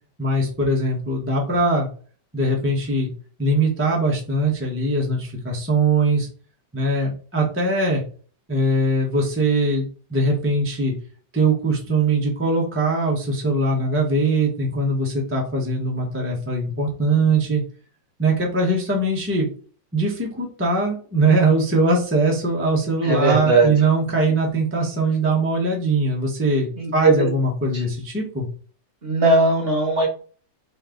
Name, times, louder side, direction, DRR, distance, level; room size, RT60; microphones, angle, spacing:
voice 1, 0.2-1.9 2.3-3.1 3.4-6.3 6.7-8.0 8.5-9.8 10.1-10.9 11.3-17.6 18.2-19.5 19.9-28.5, right 2 dB, 10° right, -1 dB, 0.7 m, -21 dB
voice 2, 23.0-23.7 26.8-27.1 27.7-27.8 29.0-30.1, right 3 dB, 35° right, 0 dB, 1.2 m, -18 dB
5.3 x 2.7 x 3.8 m, 0.42 s
omnidirectional pair, 2.0 m